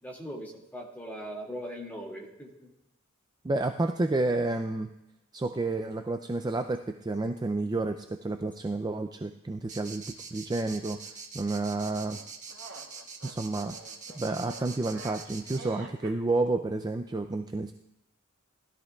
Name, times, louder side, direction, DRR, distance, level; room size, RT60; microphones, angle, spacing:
voice 1, 0.0-2.5, equal, 10° left, -2 dB, 2.2 m, -40 dB
voice 2, 3.4-4.9 5.3-11.0 11.3-12.2 13.2-13.8 14.1-17.7, right 2 dB, 20° right, 6 dB, 0.4 m, -30 dB
sound 1, 9.7-15.6, right 5 dB, 35° right, 1.3 m, -43 dB
sound 2, 12.1-16.2, right 3 dB, 85° right, 2.3 m, -47 dB
19.5 x 13.5 x 2.3 m, 0.89 s
head